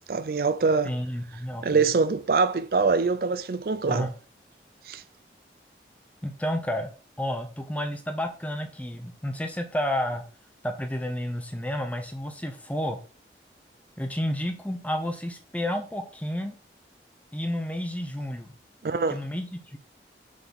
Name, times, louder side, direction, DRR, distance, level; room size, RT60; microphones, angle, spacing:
voice 1, 0.1-0.9 1.6-4.1 4.9-5.0 18.8-19.2, right 4 dB, 55° right, 0.4 m, -24 dB
voice 2, 0.8-1.8 3.9-4.1 6.2-6.9 7.2-10.2 10.6-13.0 14.0-16.5 17.3-18.5 19.1-19.8, equal, 10° left, 0.8 m, -31 dB
6.8 x 3.9 x 6.3 m
head